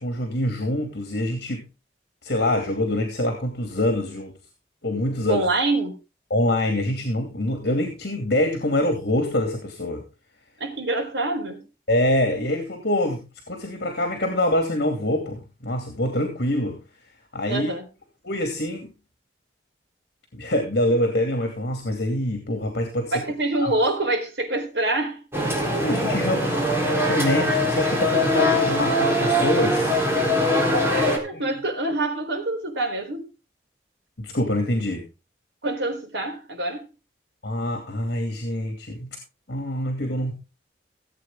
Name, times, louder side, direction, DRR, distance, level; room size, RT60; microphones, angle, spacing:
voice 1, 0.0-1.6 2.2-4.3 4.8-5.5 6.3-10.0 11.9-16.8 17.3-17.7 18.2-18.9 20.3-23.2 23.6-23.7 25.7-30.0 31.3-31.4 34.2-35.1 37.4-39.2 39.5-40.3, left 1 dB, 60° left, 2.6 m, -25 dB
voice 2, 5.3-6.0 10.6-11.6 17.5-17.9 23.1-25.2 30.1-33.3 35.6-36.9, right 2 dB, 70° right, 4.0 m, -26 dB
sound 1, 25.3-31.2, left 1 dB, 15° right, 3.8 m, -22 dB
17.0 x 8.5 x 3.7 m
head